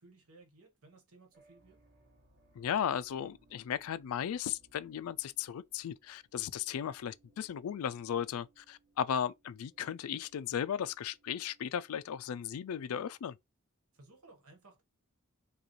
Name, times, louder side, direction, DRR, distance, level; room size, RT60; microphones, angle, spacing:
voice 1, 0.0-1.8 13.9-14.8, right 2 dB, 85° right, 1.4 m, -59 dB
sound 1, 1.3-13.2, right 2 dB, 45° right, 1.5 m, -69 dB
voice 2, 2.6-13.4, left 9 dB, 80° left, 0.3 m, -36 dB
4.8 x 2.4 x 3.1 m
head